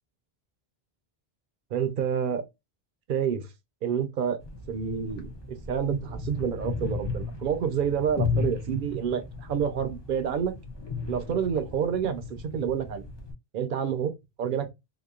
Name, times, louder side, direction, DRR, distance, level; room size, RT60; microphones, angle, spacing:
voice 1, 1.7-2.4 3.1-3.5 3.8-4.4 4.7-10.6 11.1-13.0 13.5-14.7, right 8 dB, 60° right, 0.7 m, -28 dB
sound 1, 4.4-13.3, left 4 dB, 35° left, 0.5 m, -35 dB
2.9 x 2.1 x 2.2 m
omnidirectional pair, 1.0 m